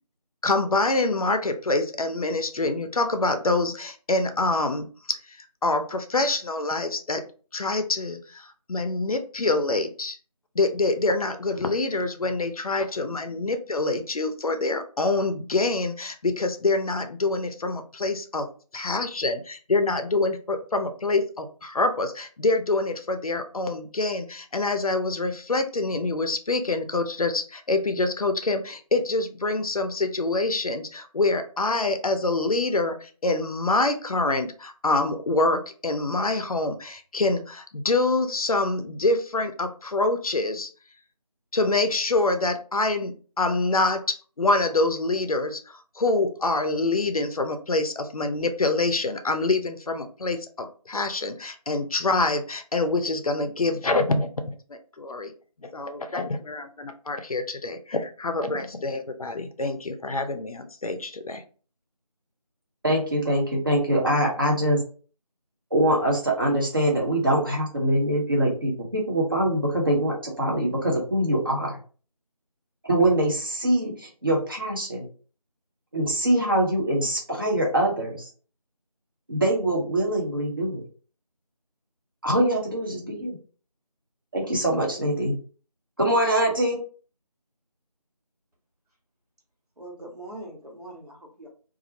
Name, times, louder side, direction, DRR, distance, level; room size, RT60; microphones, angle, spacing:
voice 1, 0.4-7.2 7.5-10.2 10.6-18.5 18.7-40.7 41.5-55.3 55.6-61.4, left 2 dB, 65° left, 8 dB, 0.5 m, -26 dB
voice 2, 62.8-64.8 65.7-71.8 72.8-75.1 75.9-78.3 79.3-80.8 82.2-83.4 84.3-85.4 86.0-86.8, right 1 dB, 35° right, -2 dB, 0.7 m, -23 dB
voice 3, 89.8-91.5, right 1 dB, 75° right, -1 dB, 1.1 m, -42 dB
2.3 x 2.0 x 2.6 m, 0.38 s
figure-of-eight pair, 170°, 20 cm